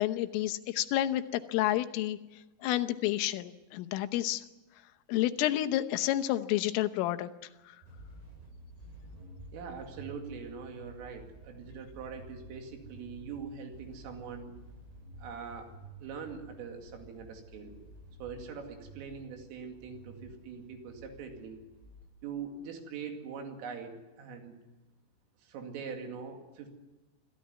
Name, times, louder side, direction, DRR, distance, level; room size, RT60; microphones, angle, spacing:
voice 1, 0.0-2.2 2.6-4.4 5.1-7.3, left 14 dB, 85° left, 10 dB, 3.6 m, -30 dB
sound 1, 7.8-22.0, right 1 dB, 60° right, 9.8 m, -51 dB
voice 2, 9.5-14.5 15.2-15.7 16.0-17.8 18.2-21.6 22.2-24.5 25.4-26.7, right 6 dB, 85° right, 4 dB, 4.9 m, -43 dB
25.5 x 15.5 x 9.5 m, 1.1 s
omnidirectional pair, 5.7 m